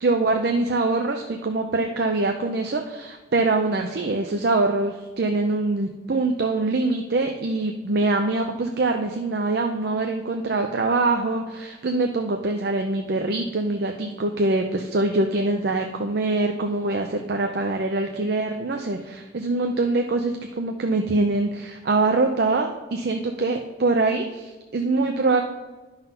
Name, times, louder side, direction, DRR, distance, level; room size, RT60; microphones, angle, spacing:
voice 1, 0.0-25.4, right 3 dB, 55° right, 4 dB, 0.5 m, -24 dB
11.0 x 4.0 x 5.4 m, 1.3 s
head